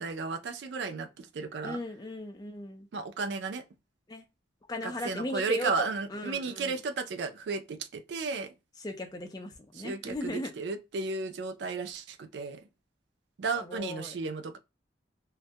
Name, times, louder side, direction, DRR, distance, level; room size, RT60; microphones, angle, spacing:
voice 1, 0.0-1.8 2.9-3.6 4.8-8.5 9.8-12.7 13.4-14.6, right 4 dB, 80° right, 0.4 m, -34 dB
voice 2, 1.6-2.9 4.1-4.2 4.7-6.8 8.8-10.5 13.6-14.2, left 1 dB, 20° left, 0.4 m, -37 dB
2.2 x 2.1 x 2.7 m
head